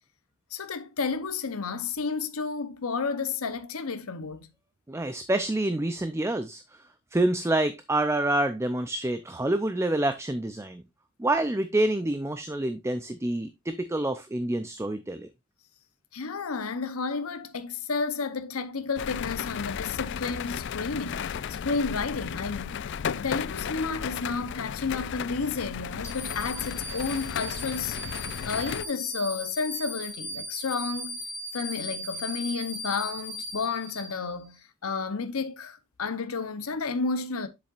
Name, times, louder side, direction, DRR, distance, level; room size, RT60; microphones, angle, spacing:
voice 1, 0.5-4.5 16.1-22.8 23.1-31.2 31.5-37.5, left 4 dB, 80° left, 0.8 m, -31 dB
voice 2, 4.9-6.6 7.1-10.8 11.2-15.3, right 1 dB, 15° right, 0.5 m, -27 dB
sound 1, 19.0-28.8, left 7 dB, 55° left, 0.4 m, -34 dB
sound 2, 26.0-34.5, equal, 15° left, 2.9 m, -38 dB
7.4 x 7.3 x 2.4 m
head